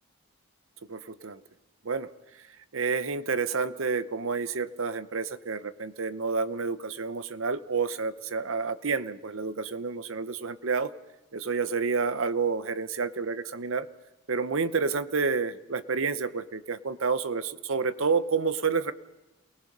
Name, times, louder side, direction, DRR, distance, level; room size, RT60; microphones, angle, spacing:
voice 1, 0.9-1.4 1.8-2.1 2.7-10.9 11.3-13.9 14.3-18.9, right 4 dB, 60° right, 12 dB, 0.8 m, -29 dB
29.0 x 19.0 x 5.4 m, 1.0 s
head